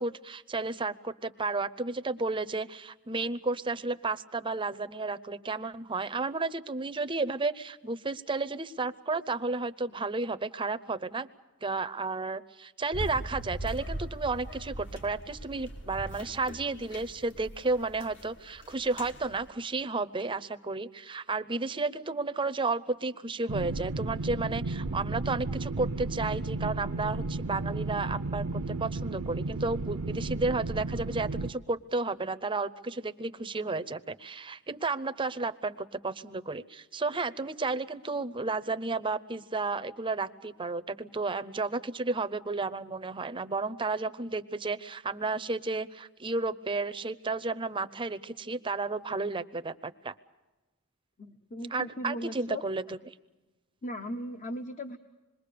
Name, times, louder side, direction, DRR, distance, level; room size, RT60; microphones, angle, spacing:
voice 1, 0.0-11.3 11.6-50.1 51.7-53.0, right 3 dB, 20° right, 11 dB, 0.7 m, -32 dB
sound 1, 12.9-19.5, right 1 dB, 55° left, 2.1 m, -41 dB
sound 2, 23.5-31.5, right 2 dB, 80° right, 0.7 m, -33 dB
voice 2, 51.2-52.6 53.8-55.0, equal, 35° left, 7 dB, 0.9 m, -38 dB
26.5 x 21.5 x 6.8 m, 1.1 s
head